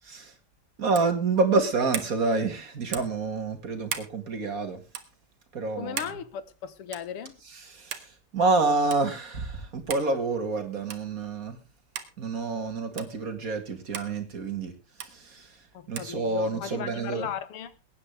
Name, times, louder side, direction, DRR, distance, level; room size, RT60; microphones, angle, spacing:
voice 1, 0.8-4.8 5.5-6.0 7.6-11.6 12.2-14.7 15.0-15.6 15.9-17.3, right 3 dB, 40° right, 2.4 m, -28 dB
sound 1, 0.9-1.2 1.9-2.2 2.9-3.2 3.9-4.1 4.9-5.1 6.0-6.2 6.9-7.1 7.9-8.1 8.9-9.0 9.9-10.1 10.9-11.1 11.9-12.1 13.0-13.1 13.9-14.1 15.0-15.1 16.0-16.1, right 8 dB, 85° right, 2.3 m, -36 dB
voice 2, 5.8-7.4 15.7-17.7, left 8 dB, 85° left, 2.1 m, -36 dB
22.0 x 9.8 x 3.4 m
omnidirectional pair, 2.4 m